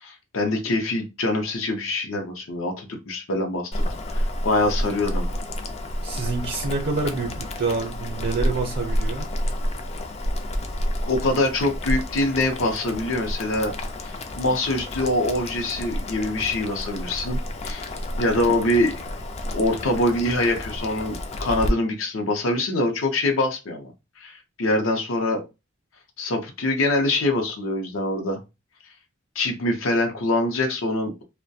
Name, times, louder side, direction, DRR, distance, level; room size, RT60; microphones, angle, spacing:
voice 1, 0.0-3.9 4.1-5.3 11.0-13.7 14.0-17.9 18.2-18.9 19.5-23.9 24.2-25.4 26.2-28.4 29.4-31.2, left 1 dB, 80° left, 0.6 m, -24 dB
Boiling, 3.7-21.7, left 1 dB, 30° left, 0.3 m, -30 dB
voice 2, 6.0-9.3, right 4 dB, 55° right, 0.5 m, -27 dB
2.2 x 2.1 x 2.6 m
head